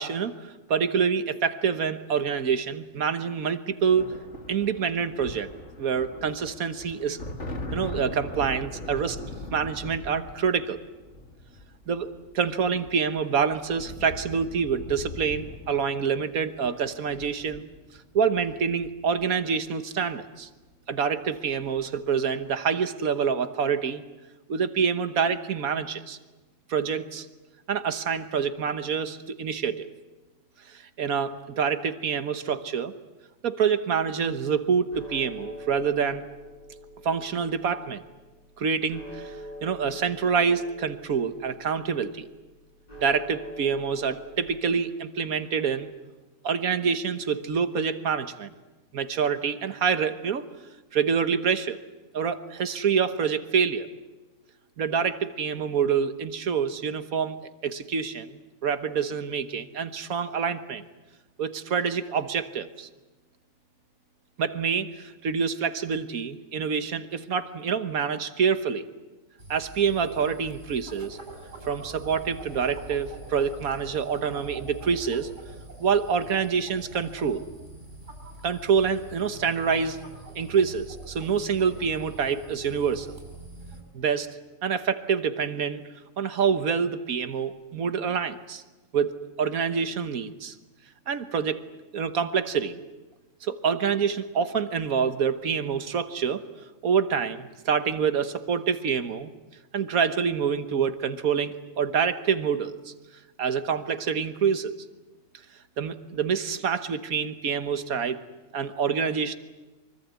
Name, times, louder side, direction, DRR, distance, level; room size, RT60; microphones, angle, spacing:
voice 1, 0.0-4.1 4.5-5.5 5.8-7.2 7.7-9.2 9.5-10.8 11.9-17.7 18.1-20.5 20.9-24.0 24.5-26.2 26.7-27.3 27.7-29.9 30.7-33.0 33.4-36.3 37.0-38.0 38.6-39.3 39.6-42.2 43.0-45.9 46.4-48.5 48.9-50.4 50.9-51.8 52.1-53.9 54.8-57.4 57.6-60.8 61.4-62.9 64.4-68.9 69.5-71.2 71.7-75.3 75.8-77.4 78.4-80.0 80.3-83.2 83.9-85.8 86.2-88.6 88.9-90.6 91.1-91.6 91.9-92.8 93.4-96.4 96.8-99.3 99.7-102.9 103.4-104.7 105.8-108.2 108.5-109.4, right 6 dB, 80° right, 10 dB, 1.7 m, -26 dB
sound 1, 3.8-19.6 20.7-21.0 21.3-22.0, left 1 dB, 55° left, 2.4 m, -41 dB
sound 2, 34.9-44.5, equal, 30° left, 4.8 m, -44 dB
sound 3, 69.4-83.8, right 2 dB, 60° right, 7.2 m, -44 dB
24.5 x 24.0 x 8.2 m, 1.2 s
omnidirectional pair, 1.5 m